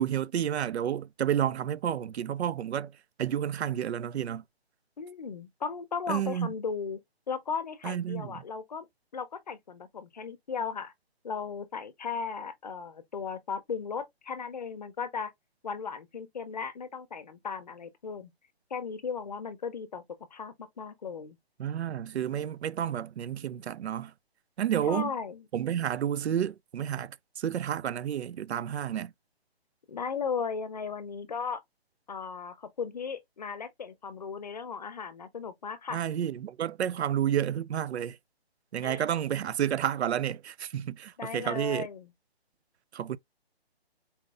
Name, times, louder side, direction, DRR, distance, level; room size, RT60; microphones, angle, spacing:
voice 1, 0.0-2.9 3.2-4.4 6.1-6.5 7.8-8.4 21.6-24.1 24.6-25.1 25.5-29.1 35.9-38.2 38.7-41.9 42.9-43.2, right 10 dB, 90° right, 0.5 m, -30 dB
voice 2, 5.0-7.0 7.3-8.9 9.1-10.9 11.2-15.3 15.6-18.3 18.7-20.0 20.3-21.4 24.8-25.5 29.9-31.6 32.1-36.0 38.8-39.0 41.2-42.1, left 5 dB, 40° left, 0.6 m, -36 dB
4.2 x 3.8 x 2.3 m
hypercardioid pair, 165°, 32 cm